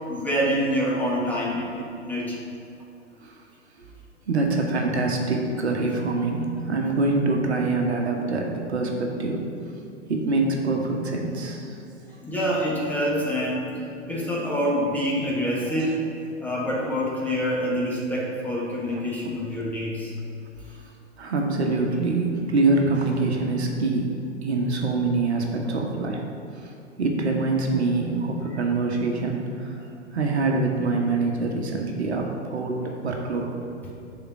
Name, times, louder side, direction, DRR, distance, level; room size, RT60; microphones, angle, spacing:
voice 1, 0.1-2.4 12.2-13.6 14.1-16.0 16.4-20.1, equal, 5° left, -6 dB, 1.3 m, -26 dB
voice 2, 4.3-9.5 10.1-11.8 15.7-15.9 18.9-19.0 20.7-20.8 21.2-26.2 26.5-26.7 27.0-29.8 30.1-33.5, right 3 dB, 60° right, 1 dB, 1.2 m, -25 dB
7.0 x 4.4 x 5.9 m, 2.7 s
figure-of-eight pair, 105°, 36 cm